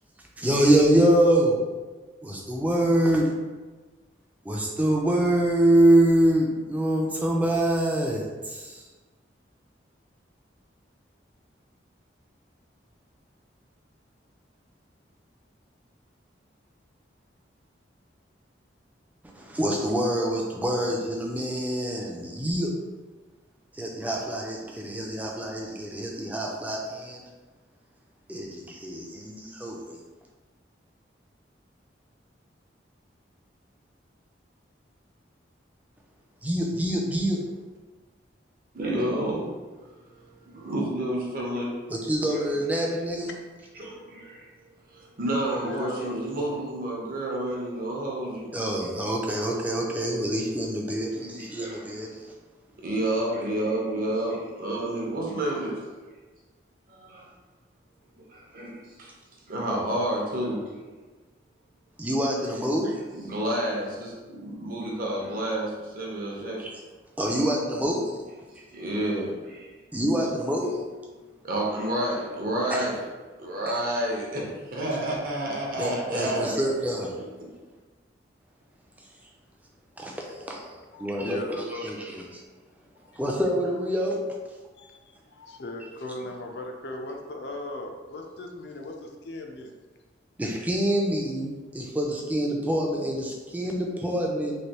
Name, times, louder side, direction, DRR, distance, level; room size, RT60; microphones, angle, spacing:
voice 1, 0.4-1.6 2.2-3.3 4.4-8.8 19.3-22.7 23.7-27.2 28.3-30.0 36.4-37.4 41.9-43.3 48.5-52.3 62.0-63.0 66.6-66.8 67.2-68.2 68.6-68.7 69.9-70.8 72.7-72.9 75.8-77.1 80.0-82.2 83.1-84.4 90.4-94.6, right 1 dB, 10° right, -1 dB, 0.4 m, -25 dB
voice 2, 38.7-39.5 40.0-41.7 42.3-42.4 43.8-44.5 44.9-48.5 51.2-52.0 52.8-55.8 56.9-57.3 58.3-59.1 59.5-60.6 63.1-66.6 68.7-69.7 71.2-73.0 73.4-76.6 77.4-77.5, right 1 dB, 50° right, -2 dB, 0.7 m, -30 dB
voice 3, 45.5-46.6 80.9-81.9 83.0-83.1 84.8-89.7, left 2 dB, 60° left, 3 dB, 0.4 m, -38 dB
3.2 x 2.6 x 2.8 m, 1.3 s
head